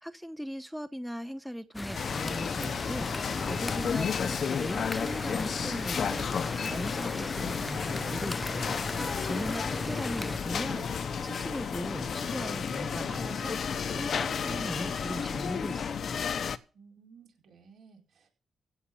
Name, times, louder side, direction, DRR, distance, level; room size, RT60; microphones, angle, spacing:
voice 1, 0.0-16.2, equal, 5° right, 0.9 m, -39 dB
sound 1, 1.7-10.4, left 2 dB, 20° left, 0.5 m, -37 dB
sound 2, 1.9-16.6, left 7 dB, 65° left, 0.9 m, -32 dB
sound 3, 2.9-15.4, right 2 dB, 25° right, 1.5 m, -48 dB
voice 2, 16.7-18.3, right 5 dB, 75° right, 4.6 m, -56 dB
16.0 x 5.9 x 7.5 m
cardioid pair, 70°, 0 cm